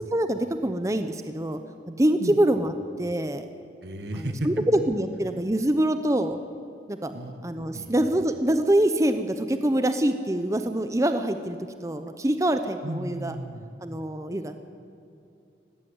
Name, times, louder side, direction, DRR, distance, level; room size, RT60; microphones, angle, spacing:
voice 1, 0.1-1.6 1.9-2.7 3.0-3.5 4.1-6.4 6.9-7.1 7.4-11.6 11.8-13.4 13.8-14.6, right 1 dB, 20° right, 8 dB, 0.7 m, -25 dB
voice 2, 3.8-4.7 7.1-7.4 7.7-8.0 12.8-13.7, right 1 dB, 75° right, 7 dB, 1.7 m, -34 dB
18.5 x 16.0 x 9.5 m, 2.6 s
head